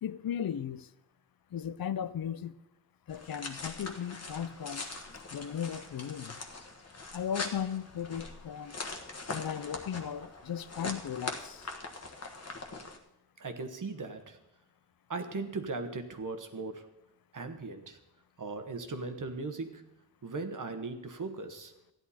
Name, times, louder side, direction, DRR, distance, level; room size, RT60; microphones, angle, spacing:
voice 1, 0.0-0.9 1.5-2.5 3.1-4.9 5.3-6.4 7.1-8.8 9.3-11.7, left 8 dB, 65° left, 0.6 m, -36 dB
sound 1, 3.1-13.0, left 3 dB, 40° left, 1.3 m, -42 dB
voice 2, 13.4-14.4 15.1-16.9 17.3-18.0 18.4-19.9 20.2-21.7, right 3 dB, 55° right, 1.3 m, -38 dB
14.5 x 10.5 x 4.2 m
wide cardioid pair, 110°, 38 cm